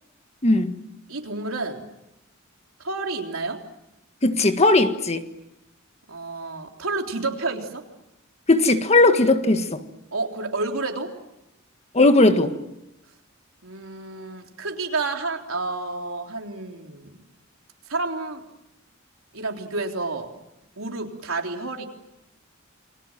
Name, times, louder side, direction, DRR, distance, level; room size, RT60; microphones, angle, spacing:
voice 1, 0.4-0.8 4.2-5.2 8.5-9.8 11.9-12.5, left 2 dB, 30° left, 1.6 m, -18 dB
voice 2, 1.1-1.8 2.8-3.6 6.1-7.8 10.1-11.1 13.6-17.2 17.9-18.4 19.3-20.3 20.8-21.8, right 3 dB, 85° right, 3.7 m, -30 dB
29.5 x 22.5 x 7.5 m
head